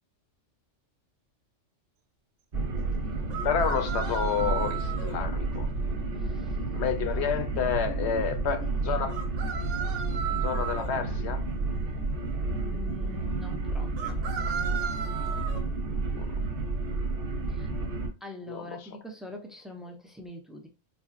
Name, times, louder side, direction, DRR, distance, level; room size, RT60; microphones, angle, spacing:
sound 1, 2.5-18.1, right 3 dB, 50° right, 0.9 m, -31 dB
sound 2, 3.3-5.1 9.1-10.9 14.0-15.6, right 8 dB, 75° right, 0.9 m, -35 dB
voice 1, 3.4-5.7 6.7-9.2 10.4-11.4 16.2-16.3 18.5-18.9, left 7 dB, 65° left, 0.8 m, -30 dB
voice 2, 6.2-6.6 7.1-9.0 12.6-14.2 17.5-17.7 18.2-20.7, left 1 dB, ahead, 0.3 m, -44 dB
4.2 x 2.9 x 2.4 m
omnidirectional pair, 1.3 m